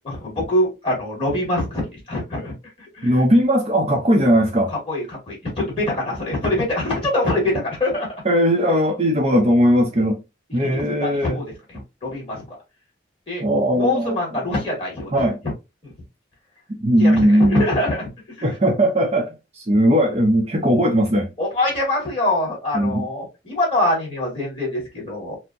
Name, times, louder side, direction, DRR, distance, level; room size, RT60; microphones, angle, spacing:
voice 1, 0.0-2.5 3.0-3.3 4.9-8.1 10.6-12.4 13.3-13.4 13.7-15.1 15.8-15.9 17.0-18.0 21.4-25.4, left 1 dB, 30° left, 2.1 m, -24 dB
voice 2, 3.0-4.7 8.2-10.2 10.5-11.4 13.4-14.2 15.1-15.4 16.8-17.6 18.4-21.3 22.7-23.1, equal, 35° right, 0.6 m, -18 dB
4.5 x 2.1 x 2.6 m
head